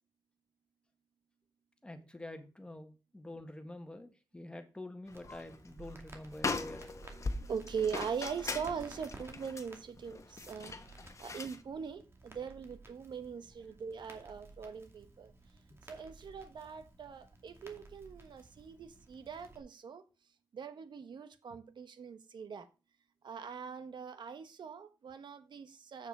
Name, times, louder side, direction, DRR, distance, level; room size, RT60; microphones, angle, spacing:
voice 1, 1.8-6.8, left 1 dB, 15° left, 1.5 m, -47 dB
sound 1, 5.1-5.6 5.9-6.0 6.3-11.6, left 3 dB, 40° left, 1.1 m, -40 dB
Crackle, 5.1-19.6, right 2 dB, 35° right, 2.3 m, -55 dB
voice 2, 7.1-10.7 11.2-15.3 15.8-20.0 20.5-22.7 23.2-26.1, right 6 dB, 85° right, 1.2 m, -41 dB
7.9 x 6.8 x 4.9 m
wide cardioid pair, 115°, 8 cm